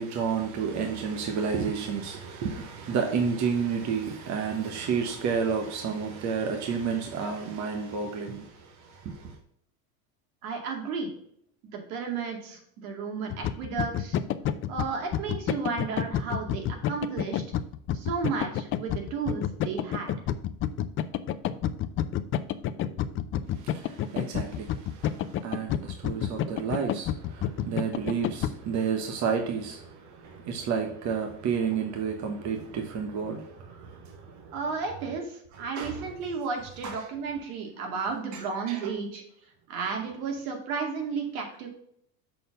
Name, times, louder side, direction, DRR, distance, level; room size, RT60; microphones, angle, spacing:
voice 1, 0.0-8.5 9.0-9.2 23.6-25.1 25.4-29.9 30.2-34.0 34.4-34.5 35.5-36.1 36.8-37.1 38.3-38.4 38.7-38.9, right 6 dB, 40° right, 4 dB, 1.2 m, -30 dB
voice 2, 10.4-11.1 11.7-14.2 14.7-17.4 17.9-20.1 34.5-39.2 39.7-41.7, right 5 dB, 75° right, 2 dB, 2.5 m, -33 dB
sound 1, 13.3-28.5, left 10 dB, 30° left, 0.4 m, -29 dB
6.7 x 4.3 x 5.3 m, 0.70 s
supercardioid pair, 125°, 42 cm